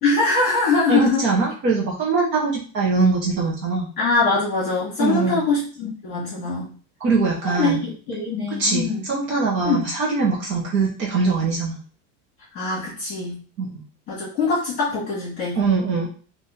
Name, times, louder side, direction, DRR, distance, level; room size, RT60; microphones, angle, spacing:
voice 1, 0.0-1.2 4.0-6.7 7.4-7.7 8.1-9.0 9.6-9.9 12.5-13.4 14.1-15.6, left 3 dB, 25° left, -8 dB, 1.7 m, -22 dB
voice 2, 0.9-3.9 5.0-5.5 7.0-7.8 8.6-11.8 13.6-13.8 15.6-16.1, right 4 dB, 35° right, -3 dB, 0.9 m, -22 dB
3.6 x 2.5 x 4.1 m, 0.40 s
cardioid pair, 175°, 36 cm